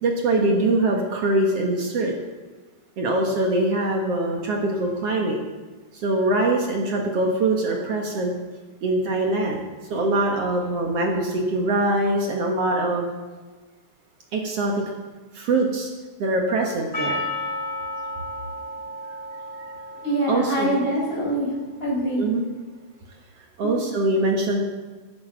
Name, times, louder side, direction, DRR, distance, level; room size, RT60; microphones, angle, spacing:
voice 1, 0.0-2.1 3.0-5.4 5.9-8.3 8.8-9.6 9.9-13.1 14.3-14.8 15.3-15.9 16.2-17.2 19.6-19.7 20.3-20.8 22.2-22.5 23.6-24.6, right 2 dB, 55° right, 1 dB, 2.0 m, -23 dB
Percussion, 16.9-21.5, left 1 dB, 65° left, 0.5 m, -33 dB
voice 2, 20.0-21.5 21.8-22.2 23.6-23.8, right 1 dB, 15° left, -5 dB, 5.0 m, -24 dB
11.0 x 9.7 x 7.6 m, 1.3 s
omnidirectional pair, 4.0 m